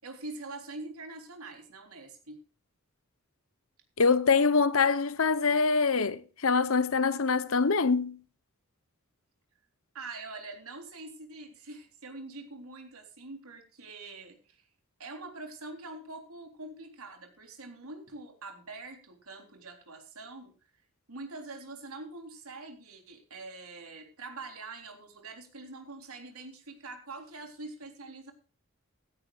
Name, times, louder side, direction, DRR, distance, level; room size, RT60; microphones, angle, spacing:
voice 1, 0.0-2.4 9.9-14.7 15.0-20.5 21.1-28.3, right 3 dB, 90° right, 3.7 m, -44 dB
voice 2, 4.0-8.2, left 4 dB, 70° left, 0.9 m, -24 dB
16.5 x 15.5 x 2.5 m
head